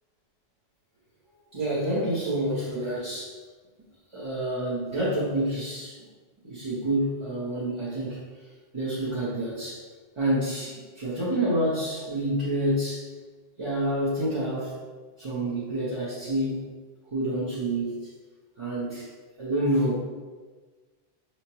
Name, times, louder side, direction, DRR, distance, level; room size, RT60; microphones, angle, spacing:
voice 1, 1.5-3.4 4.1-6.0 6.4-8.2 8.7-9.8 10.2-13.0 13.6-14.7 15.2-16.6 17.1-18.0 18.6-19.1 19.4-20.0, right 1 dB, 30° right, -8 dB, 0.9 m, -28 dB
5.6 x 3.1 x 2.9 m, 1.4 s
omnidirectional pair, 1.1 m